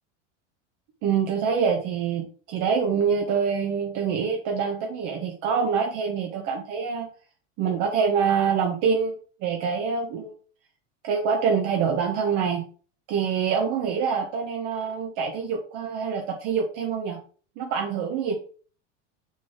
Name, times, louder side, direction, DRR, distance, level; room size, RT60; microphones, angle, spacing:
voice 1, 1.0-7.1 7.6-9.1 9.4-10.3 11.0-12.6 13.1-17.2 17.6-18.4, right 6 dB, 55° right, 2 dB, 1.3 m, -25 dB
6.2 x 5.6 x 2.9 m, 0.40 s
supercardioid pair, 115°, 37 cm